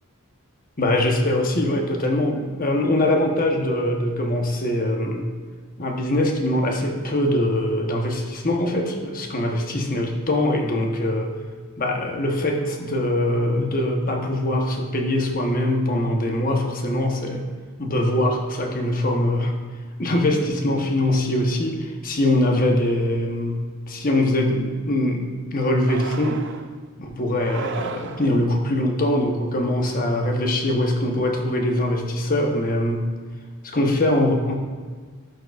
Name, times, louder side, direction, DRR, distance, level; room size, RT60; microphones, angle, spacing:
voice 1, 0.8-5.3 5.8-11.3 11.8-17.5 17.8-19.5 20.0-23.6 23.9-26.5 27.0-33.1 33.6-34.5, left 1 dB, 40° left, 2 dB, 1.0 m, -22 dB
sound 1, 25.9-26.7 27.3-28.5, right 4 dB, 55° right, 0.4 m, -35 dB
11.5 x 6.4 x 2.4 m, 1.5 s
head